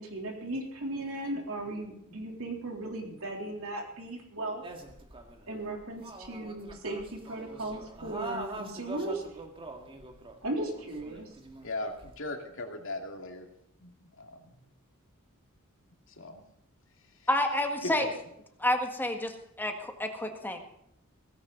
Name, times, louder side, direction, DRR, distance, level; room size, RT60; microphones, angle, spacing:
voice 1, 0.0-4.7 5.5-9.2 10.4-11.3, right 2 dB, 70° right, 2 dB, 3.5 m, -36 dB
sound 1, 4.6-12.2, right 2 dB, 25° right, 1.9 m, -44 dB
voice 2, 11.6-13.5 13.8-14.7 16.1-16.4 17.0-17.3 17.8-18.1, left 2 dB, 60° left, 4 dB, 2.5 m, -39 dB
voice 3, 17.3-18.1 18.6-20.6, left 1 dB, 10° left, 4 dB, 1.8 m, -29 dB
17.5 x 15.5 x 4.0 m, 0.75 s
head